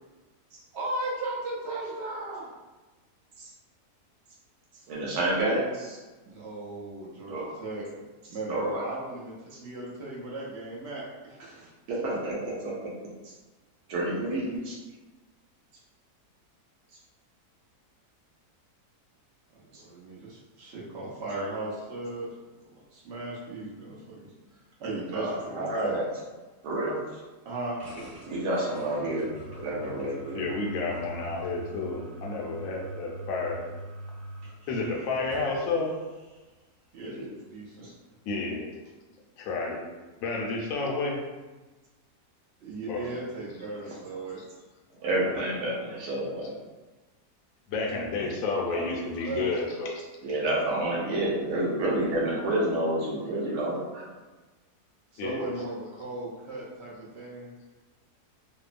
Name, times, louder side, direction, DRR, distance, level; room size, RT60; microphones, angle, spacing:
voice 1, 0.7-2.5 6.3-7.8 8.3-11.7 19.5-22.3 22.9-24.3 24.8-25.9 27.4-27.8 36.9-37.9 42.6-44.4 48.1-48.9 49.2-49.7 55.1-57.5, right 2 dB, 60° right, -6 dB, 0.7 m, -37 dB
voice 2, 4.9-6.0 7.3-7.5 8.5-8.9 11.9-12.9 13.2-13.3 13.9-14.8 19.7-19.8 25.1-26.2 26.6-27.0 28.2-29.3 29.6-30.4 37.0-37.3 45.0-46.5 50.2-54.2, right 1 dB, 75° right, -5 dB, 1.2 m, -29 dB
sound 1, 27.8-36.5, right 1 dB, 40° right, 1.2 m, -44 dB
voice 3, 30.3-33.6 34.7-36.0 38.3-38.7 39.4-39.8 40.2-41.2 42.9-43.2 45.2-45.4 47.7-50.1 55.2-55.6, left 3 dB, 70° left, -1 dB, 0.9 m, -31 dB
2.9 x 2.0 x 2.4 m, 1.2 s
omnidirectional pair, 1.7 m